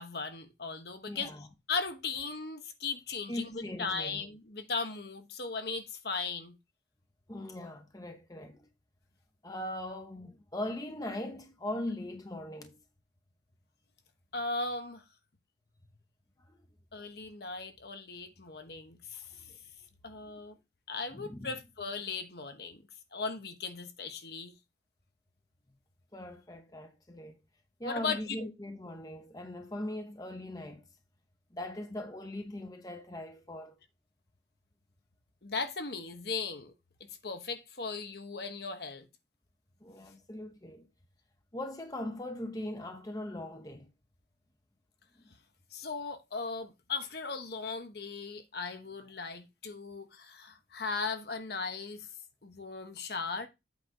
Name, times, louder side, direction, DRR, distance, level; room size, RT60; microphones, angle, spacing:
voice 1, 0.0-1.3 1.7-6.5 14.3-15.0 16.9-19.3 20.0-20.6 20.9-22.8 23.1-24.6 27.8-28.5 35.4-36.7 37.0-39.1 45.7-52.1 52.4-53.5, left 4 dB, 55° left, 1.1 m, -37 dB
voice 2, 1.1-1.5 3.3-4.3 7.3-8.7 9.4-12.8 16.5-16.6 19.4-19.5 20.2-20.4 21.1-21.6 26.1-27.4 27.8-30.8 31.5-33.8 39.8-40.9 41.5-43.9, left 1 dB, 20° left, 0.9 m, -40 dB
8.4 x 4.1 x 5.1 m
head